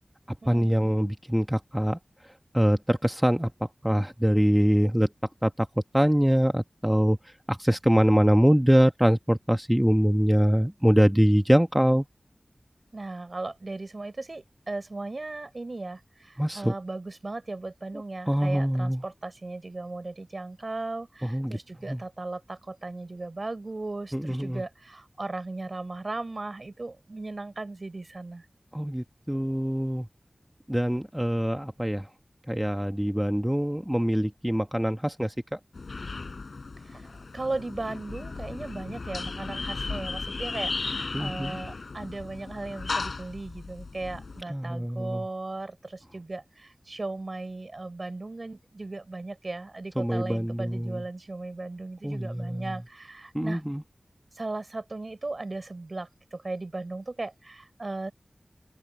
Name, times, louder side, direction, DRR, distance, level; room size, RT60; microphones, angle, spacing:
voice 1, 0.3-2.0 2.2-5.1 5.4-5.7 5.9-12.1 16.4-16.7 18.3-19.0 21.2-21.6 21.9-22.0 24.1-24.6 28.7-30.1 30.7-32.1 32.5-35.6 41.1-41.5 44.5-45.3 50.0-51.0 52.0-52.8 53.3-53.8, equal, 5° right, 1.2 m, -24 dB
voice 2, 12.9-28.4 36.8-53.6 54.3-58.1, right 2 dB, 50° right, 4.9 m, -37 dB
sound 1, 35.7-44.4, left 3 dB, 85° left, 3.9 m, -35 dB
wide cardioid pair, 75°, 0 cm